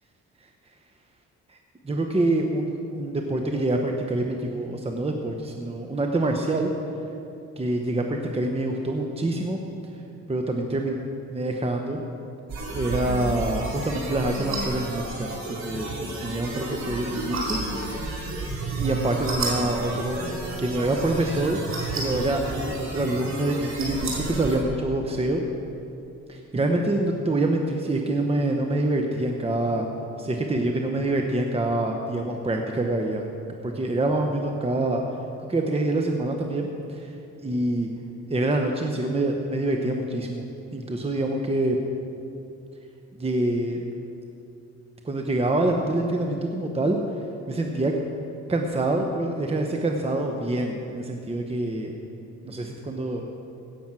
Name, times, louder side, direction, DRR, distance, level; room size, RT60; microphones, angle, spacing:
voice 1, 1.8-6.7 7.6-9.6 10.3-11.0 11.3-12.0 12.7-15.9 16.2-17.6 17.8-18.3 18.8-20.2 20.6-21.6 21.9-25.4 26.3-29.9 30.2-33.2 33.6-35.0 35.5-37.1 37.4-37.9 38.3-40.5 40.7-41.8 43.1-43.8 45.0-47.0 47.5-47.9 48.5-51.9 52.5-53.2, right 2 dB, 20° right, 2 dB, 1.0 m, -26 dB
sound 1, 12.5-24.6, right 2 dB, 65° right, 3.3 m, -31 dB
16.5 x 7.2 x 6.1 m, 2.7 s
cardioid pair, 90°, 30 cm